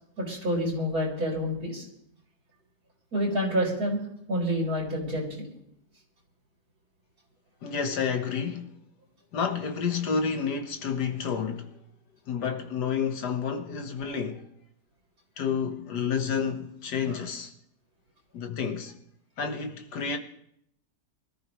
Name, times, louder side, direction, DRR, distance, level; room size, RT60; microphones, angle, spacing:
voice 1, 0.2-1.8 3.1-4.0 4.3-5.5, equal, 60° right, 5.2 m, -28 dB
voice 2, 7.6-8.7 9.3-11.7 12.3-14.5 15.4-17.5 18.3-18.9 19.4-20.2, left 6 dB, 75° left, 1.9 m, -30 dB
24.0 x 13.5 x 3.2 m
omnidirectional pair, 1.8 m